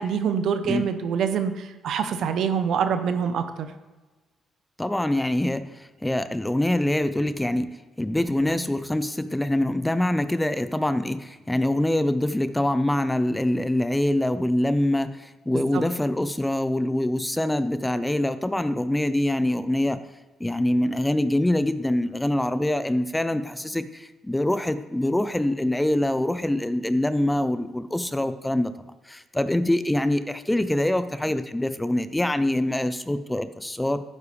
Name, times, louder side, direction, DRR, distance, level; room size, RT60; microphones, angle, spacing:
voice 1, 0.0-3.7 15.5-15.8, right 7 dB, 70° right, 9 dB, 0.9 m, -25 dB
voice 2, 4.8-5.6 6.0-7.7 8.0-20.0 20.4-28.7 29.1-34.0, left 1 dB, 10° left, 12 dB, 0.6 m, -24 dB
12.0 x 9.8 x 3.4 m, 1.2 s
cardioid pair, 90°, 0 cm